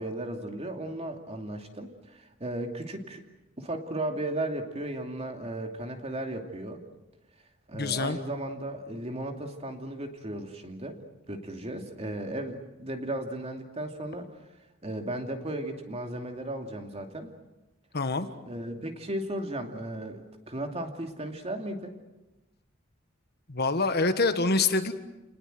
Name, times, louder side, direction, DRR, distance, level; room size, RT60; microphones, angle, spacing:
voice 1, 0.0-3.2 3.6-6.8 7.7-11.0 11.3-14.3 14.8-17.3 18.4-21.9, right 1 dB, 30° right, 4 dB, 2.6 m, -35 dB
voice 2, 7.7-8.2 17.9-18.3 23.5-24.9, left 3 dB, 55° left, 9 dB, 1.5 m, -25 dB
29.5 x 19.5 x 7.9 m, 1.0 s
head